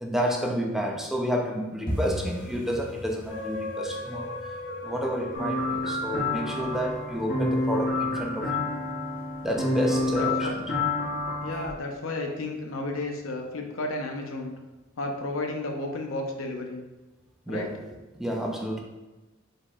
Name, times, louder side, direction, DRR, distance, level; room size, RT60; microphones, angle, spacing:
voice 1, 0.0-4.4 4.8-8.5 9.4-10.6 17.5-17.8 18.2-18.8, equal, ahead, 0 dB, 0.4 m, -30 dB
sound 1, 1.9-12.6 12.8-13.5 13.8-14.1 14.4-14.7 15.0-15.1 15.6-16.2 16.5-16.6 17.1-17.2, equal, 20° left, 1.0 m, -41 dB
sound 2, 3.3-9.0 9.5-9.6, left 2 dB, 70° left, 1.3 m, -39 dB
sound 3, 5.3-11.7, left 2 dB, 45° left, 1.0 m, -28 dB
voice 2, 9.8-10.5 11.4-14.5 15.0-16.8 17.5-17.7, left 2 dB, 85° left, 2 dB, 0.7 m, -33 dB
5.0 x 3.9 x 2.3 m, 1.1 s
head